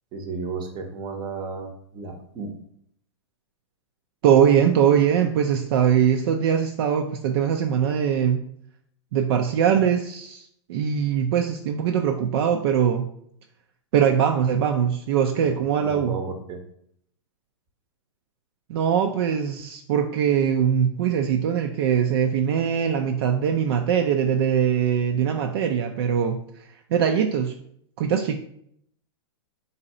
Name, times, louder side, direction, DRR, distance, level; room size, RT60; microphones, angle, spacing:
voice 1, 0.1-2.5 15.4-15.5 15.8-16.6, right 4 dB, 30° right, 5 dB, 0.7 m, -33 dB
voice 2, 4.2-8.4 9.1-13.1 13.9-16.1 18.7-26.4 26.9-27.5 28.0-28.3, right 8 dB, 55° right, 4 dB, 0.4 m, -22 dB
3.9 x 2.7 x 4.1 m, 0.68 s
hypercardioid pair, 140°, 15 cm